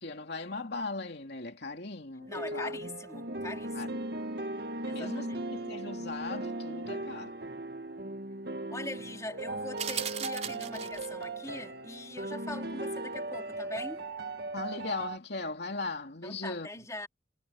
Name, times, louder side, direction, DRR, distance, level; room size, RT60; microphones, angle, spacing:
voice 1, 0.0-2.8 3.7-3.9 4.4-4.5 4.9-7.3 14.5-16.7, left 3 dB, 55° left, 3.0 m, -38 dB
sound 1, 2.2-15.2, right 2 dB, 55° right, 2.1 m, -38 dB
voice 2, 2.3-4.1 4.8-5.5 8.7-14.0 16.2-17.1, left 2 dB, 15° left, 4.2 m, -42 dB
sound 2, 9.8-11.2, right 8 dB, 35° right, 4.6 m, -37 dB
head